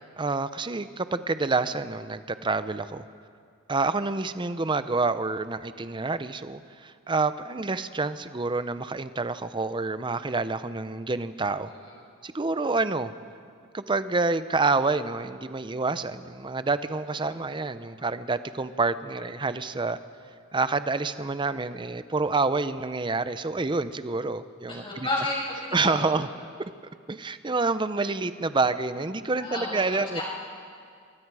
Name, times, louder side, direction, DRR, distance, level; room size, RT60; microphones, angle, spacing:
voice 1, 0.2-3.0 3.7-11.7 12.2-13.1 13.7-20.0 20.5-25.1 25.7-26.3 26.6-26.7 27.1-30.2, right 3 dB, 20° right, 12 dB, 0.6 m, -28 dB
voice 2, 24.7-26.1 29.4-29.8 30.1-30.2, left 2 dB, 25° left, -5 dB, 7.0 m, -31 dB
25.0 x 24.0 x 4.8 m, 2.2 s
head